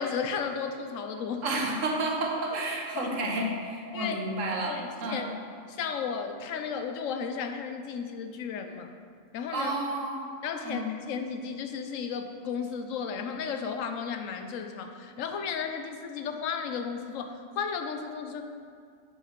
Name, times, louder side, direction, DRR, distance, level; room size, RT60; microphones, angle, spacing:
voice 1, 0.0-1.4 2.9-3.4 3.9-4.2 4.6-5.3 5.7-8.9 9.3-9.7 10.4-18.4, left 6 dB, 90° left, 7 dB, 1.0 m, -34 dB
voice 2, 1.4-4.7 5.0-5.3 9.5-10.3 10.6-10.9, right 2 dB, 80° right, 0 dB, 1.5 m, -31 dB
6.8 x 5.5 x 5.1 m, 2.2 s
omnidirectional pair, 1.3 m